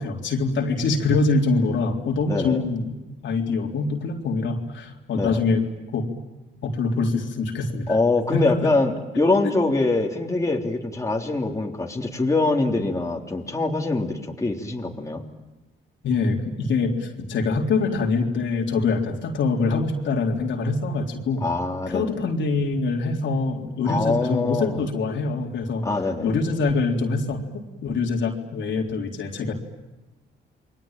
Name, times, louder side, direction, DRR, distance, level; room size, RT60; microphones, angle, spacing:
voice 1, 0.0-3.0 3.2-5.6 5.9-6.1 6.6-7.9 8.3-8.7 9.4-9.5 16.0-21.4 21.9-25.8 26.2-29.5, left 3 dB, 70° left, 1 dB, 3.8 m, -24 dB
voice 2, 2.3-2.6 5.1-5.4 7.9-15.2 21.4-22.2 23.8-24.8 25.8-26.3, left 2 dB, 15° left, 0 dB, 3.5 m, -24 dB
29.0 x 22.5 x 9.1 m, 1.1 s
cardioid pair, 90°, 20 cm